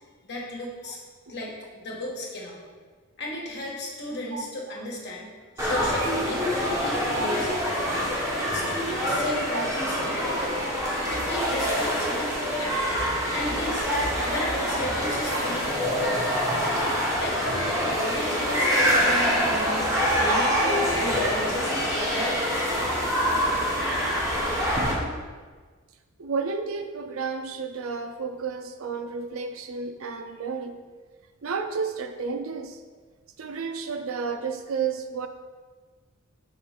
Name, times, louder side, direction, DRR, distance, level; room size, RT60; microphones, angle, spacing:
voice 1, 0.2-1.0 1.3-2.6 3.2-7.7 8.3-10.6 11.1-12.9 13.3-13.9 14.2-16.7 17.2-22.7, left 1 dB, 55° left, -2 dB, 1.4 m, -35 dB
voice 2, 4.3-4.8 6.0-6.1 6.6-6.7 7.1-7.6 9.5-9.6 11.6-11.7 15.3-15.4 18.5-18.9 19.7-20.1 20.5-20.8 26.2-30.8 31.4-32.8 33.4-35.3, right 5 dB, 80° right, 7 dB, 0.5 m, -32 dB
sound 1, 5.6-24.9, equal, 15° right, 1.1 m, -25 dB
5.0 x 3.8 x 5.7 m, 1.4 s
head